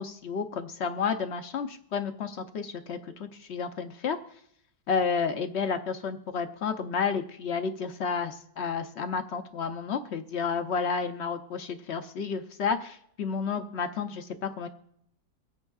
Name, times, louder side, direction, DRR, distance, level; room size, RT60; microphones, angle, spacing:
voice 1, 0.0-4.2 4.9-14.7, left 5 dB, 65° left, 8 dB, 0.6 m, -31 dB
24.5 x 8.8 x 2.3 m, 0.73 s
omnidirectional pair, 1.8 m